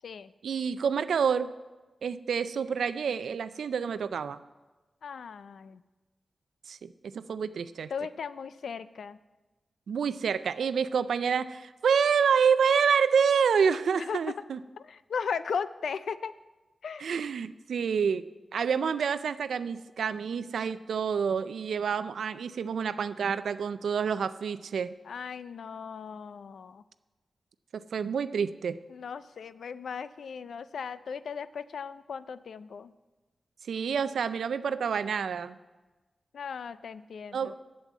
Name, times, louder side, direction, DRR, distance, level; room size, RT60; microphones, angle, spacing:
voice 1, 0.4-1.5 2.0-4.4 6.7-7.9 9.9-14.6 17.0-24.9 27.7-28.8 33.7-35.6 37.3-37.6, right 6 dB, 90° right, 13 dB, 0.4 m, -28 dB
voice 2, 5.0-5.8 7.9-9.2 14.0-14.2 14.8-16.3 16.8-17.1 25.1-26.8 28.9-32.9 36.3-37.6, left 6 dB, 85° left, 15 dB, 0.4 m, -37 dB
8.2 x 7.6 x 8.0 m, 1.2 s
cardioid pair, 50°, 0 cm